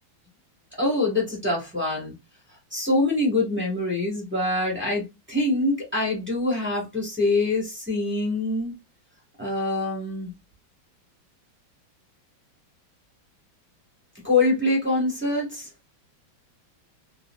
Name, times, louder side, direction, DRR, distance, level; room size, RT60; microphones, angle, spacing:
voice 1, 0.8-2.1 2.7-8.7 9.4-10.3 14.2-15.7, left 2 dB, 10° right, 0.8 m, -24 dB
3.0 x 2.7 x 2.2 m
omnidirectional pair, 2.2 m